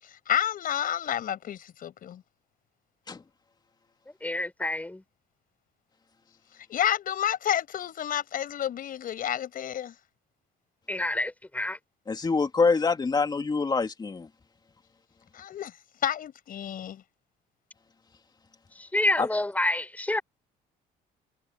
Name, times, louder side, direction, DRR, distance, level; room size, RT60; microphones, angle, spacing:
voice 1, 0.0-2.2 6.7-9.9 15.3-15.7 16.0-17.0, left 10 dB, 55° left, 6.6 m, -30 dB
voice 2, 4.2-5.0 10.9-11.8 18.9-20.2, left 1 dB, 10° left, 7.1 m, -28 dB
voice 3, 12.1-14.3 19.2-19.3, left 4 dB, 25° left, 3.1 m, -25 dB
cardioid pair, 110°, 17 cm